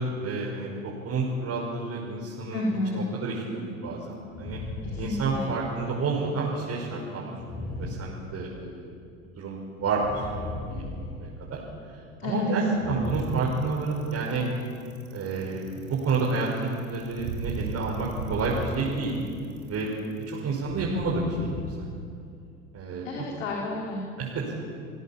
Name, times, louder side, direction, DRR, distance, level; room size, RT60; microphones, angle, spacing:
voice 1, 0.0-2.6 2.9-4.6 5.0-8.9 9.4-10.8 11.2-11.6 11.9-14.5 15.1-19.1 19.7-19.9 20.3-21.5 21.8-21.9 22.7-23.1 24.2-24.6, right 3 dB, 40° right, -4 dB, 5.7 m, -30 dB
voice 2, 2.5-3.1 4.9-5.5 12.2-12.5 23.0-24.0, left 2 dB, 70° left, -2 dB, 4.2 m, -30 dB
sound 1, 4.3-5.9 7.4-8.9 9.7-11.9 12.6-14.2 15.3-16.1 18.1-19.0 19.3-19.6 21.0-22.6, left 2 dB, 35° left, 7.0 m, -38 dB
Bicycle, 13.0-21.1, right 4 dB, 75° right, 4.5 m, -38 dB
29.0 x 16.5 x 7.5 m, 2.3 s
hypercardioid pair, 85°, 40 cm